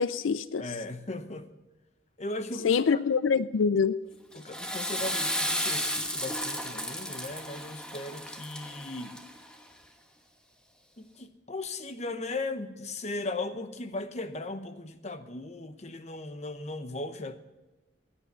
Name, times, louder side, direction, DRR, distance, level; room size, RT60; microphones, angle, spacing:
voice 1, 0.0-0.6 2.6-4.0, left 6 dB, 85° left, 0.4 m, -25 dB
voice 2, 0.6-1.5 2.2-3.0 4.3-9.2 11.0-17.4, left 2 dB, 35° left, 0.9 m, -37 dB
Water / Toilet flush, 4.3-9.5, equal, 5° left, 1.2 m, -33 dB
16.5 x 10.0 x 5.6 m
head